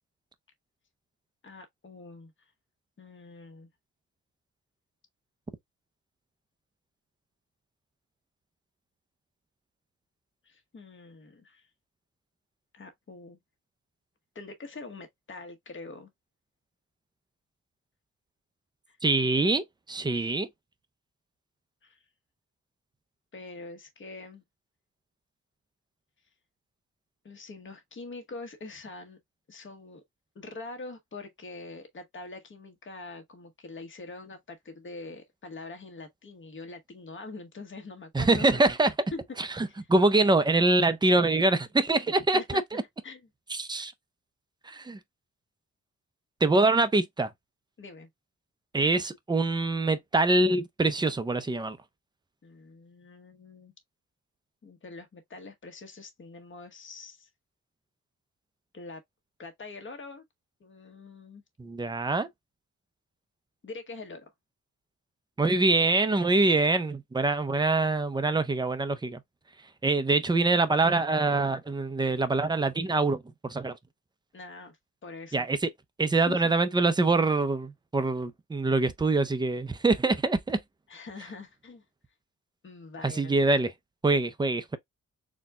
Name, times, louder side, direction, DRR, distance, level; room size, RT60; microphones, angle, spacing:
voice 1, 1.4-2.3 3.0-3.7 10.4-11.7 12.7-13.4 14.3-16.1 18.9-19.0 21.8-22.0 23.3-24.4 27.2-29.2 29.5-30.0 30.3-38.4 39.1-39.2 39.8-39.9 42.3-42.6 43.0-43.2 47.8-48.1 52.4-53.7 54.6-57.3 58.7-59.0 59.4-60.2 60.6-61.4 63.6-64.3 74.3-74.8 75.0-75.5 76.1-76.4 80.9-81.8 82.6-83.3, left 3 dB, 40° left, 1.2 m, -44 dB
voice 2, 19.0-20.5 38.1-38.9 39.4-42.8 43.5-43.9 44.6-45.0 46.4-47.3 48.7-51.8 61.6-62.3 65.4-69.2 69.8-73.8 75.3-75.7 76.0-80.6 83.0-83.7 84.0-84.8, right 2 dB, 15° right, 0.4 m, -24 dB
4.2 x 2.2 x 3.5 m
wide cardioid pair, 150°, 31 cm